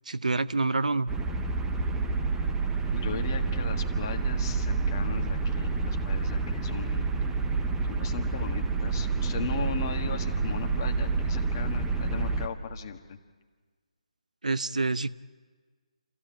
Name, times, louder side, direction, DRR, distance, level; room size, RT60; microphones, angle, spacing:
voice 1, 0.1-1.1 14.4-15.1, right 3 dB, 90° right, 15 dB, 0.7 m, -27 dB
sound 1, 1.1-12.5, right 4 dB, 5° right, 0.8 m, -29 dB
voice 2, 2.9-7.1 7.9-13.2, left 7 dB, 30° left, 4 dB, 1.6 m, -38 dB
sound 2, 11.7-13.1, right 2 dB, 55° right, 2.3 m, -40 dB
27.0 x 16.0 x 8.9 m, 1.5 s
hypercardioid pair, 165°, 4 cm